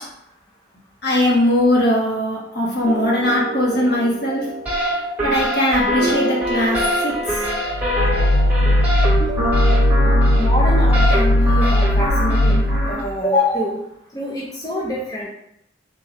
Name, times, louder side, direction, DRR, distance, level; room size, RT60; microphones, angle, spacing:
voice 1, 1.0-4.4 5.2-7.4, left 1 dB, 55° left, -4 dB, 1.3 m, -20 dB
sound 1, 2.9-12.0, right 2 dB, 40° right, 0.4 m, -30 dB
sound 2, 4.7-13.0, equal, 10° right, 1.0 m, -24 dB
sound 3, 7.7-13.1, left 1 dB, 85° left, 0.4 m, -17 dB
voice 2, 10.4-13.8 14.1-15.3, left 1 dB, 20° left, -4 dB, 0.5 m, -25 dB
3.6 x 3.0 x 4.1 m, 0.77 s
head